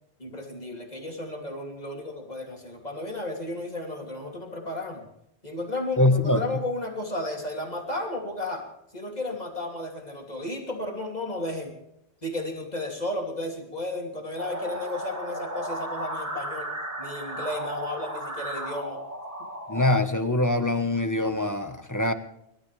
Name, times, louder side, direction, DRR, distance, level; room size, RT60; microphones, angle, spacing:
voice 1, 0.2-5.1 5.4-8.7 8.9-11.7 12.2-16.7 17.0-19.0, left 1 dB, 40° left, 1 dB, 3.0 m, -33 dB
voice 2, 6.0-6.4 19.7-22.1, left 1 dB, 15° left, 8 dB, 1.3 m, -23 dB
sound 1, 14.4-20.0, right 1 dB, 15° right, 2.1 m, -34 dB
28.5 x 13.0 x 3.4 m, 0.81 s
omnidirectional pair, 1.1 m